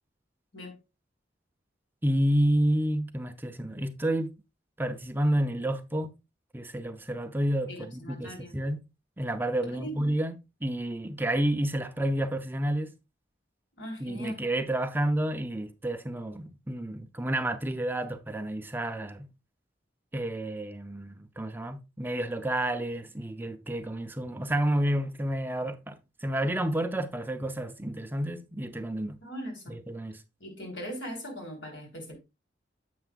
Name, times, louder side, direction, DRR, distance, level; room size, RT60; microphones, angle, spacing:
voice 1, 2.0-4.3 4.8-6.1 6.5-8.8 9.2-10.4 10.6-12.9 14.0-19.3 20.1-29.2 29.7-30.2, right 1 dB, 10° right, 0.5 m, -30 dB
voice 2, 7.7-8.6 9.6-10.0 13.8-14.5 29.2-29.8 30.4-32.2, equal, 80° left, 3.6 m, -40 dB
9.3 x 7.9 x 2.4 m
head